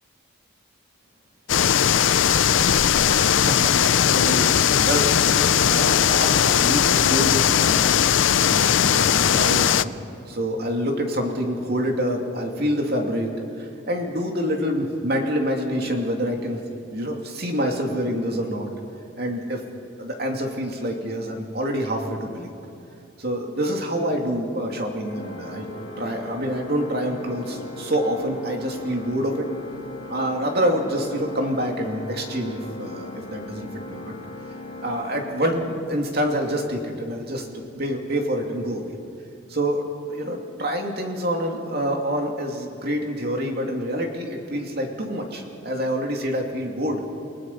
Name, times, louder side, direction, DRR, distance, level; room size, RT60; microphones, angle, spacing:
sound 1, 1.5-9.8, left 9 dB, 70° left, 0.5 m, -19 dB
voice 1, 3.1-10.0 10.3-16.6 16.9-18.7 19.2-19.6 20.0-22.5 23.2-25.7 26.0-29.5 30.1-34.1 34.8-38.9 39.5-47.0, equal, 50° right, 2 dB, 2.8 m, -27 dB
Organ, 25.0-36.2, left 2 dB, 50° left, 2.0 m, -39 dB
sound 2, 25.6-39.0, left 1 dB, 25° right, 3.2 m, -48 dB
30.0 x 18.5 x 5.6 m, 2.8 s
head